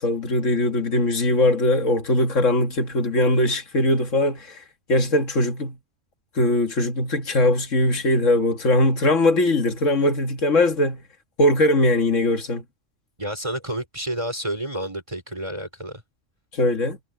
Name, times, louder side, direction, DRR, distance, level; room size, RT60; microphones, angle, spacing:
voice 1, 0.0-4.6 4.9-5.8 6.4-11.0 11.4-12.6 16.5-17.0, left 1 dB, 70° left, 2.1 m, -20 dB
voice 2, 13.2-16.0, right 1 dB, 25° right, 4.7 m, -30 dB
omnidirectional pair, 1.4 m